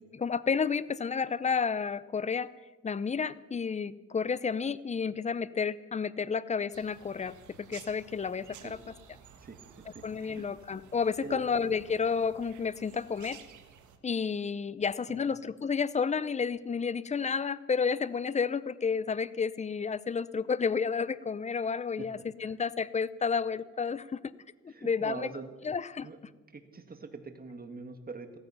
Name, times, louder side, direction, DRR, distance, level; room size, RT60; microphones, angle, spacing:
voice 1, 0.1-2.5 2.8-8.8 10.0-13.4 14.0-24.2 24.6-25.3 25.6-26.1, left 5 dB, 25° left, 18 dB, 0.6 m, -31 dB
sound 1, 6.7-14.0, right 7 dB, 75° right, 1.6 m, -54 dB
voice 2, 9.4-10.4 11.2-11.4 15.1-15.3 22.0-22.1 22.4-22.5 24.7-25.5 26.0-26.2 26.5-28.4, right 4 dB, 30° right, 7 dB, 1.9 m, -44 dB
16.0 x 14.5 x 5.8 m, 1.2 s
cardioid pair, 90°, 30 cm